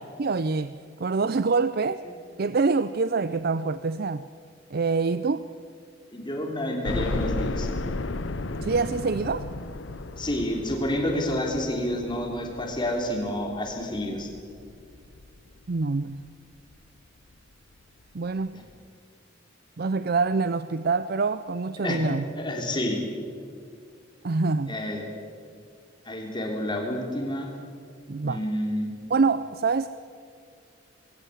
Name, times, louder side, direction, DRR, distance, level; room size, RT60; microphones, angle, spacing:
voice 1, 0.2-2.0 2.4-4.3 4.7-5.4 8.6-9.5 15.7-16.2 18.1-18.6 19.8-22.3 24.2-24.7 28.1-28.4 29.1-29.9, right 4 dB, 55° right, 14 dB, 0.5 m, -25 dB
voice 2, 6.1-7.7 10.2-14.3 21.8-23.0 24.7-25.0 26.0-27.5 28.2-28.9, left 1 dB, 25° left, 1 dB, 3.7 m, -29 dB
sound 1, 6.8-15.8 16.2-16.3 16.7-16.8 18.0-18.1 18.4-18.5, left 2 dB, 75° left, 0.8 m, -34 dB
21.0 x 18.0 x 8.3 m, 2.3 s
head